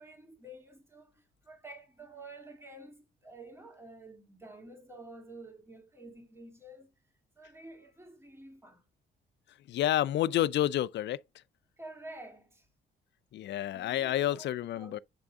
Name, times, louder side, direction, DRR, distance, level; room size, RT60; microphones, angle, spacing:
voice 1, 0.0-6.9 7.4-8.8 11.8-12.7 13.7-15.0, right 2 dB, 10° right, 2.1 m, -50 dB
voice 2, 9.7-11.2 13.3-15.0, left 13 dB, 65° left, 0.4 m, -29 dB
7.7 x 3.5 x 3.6 m
cardioid pair, 90°, 20 cm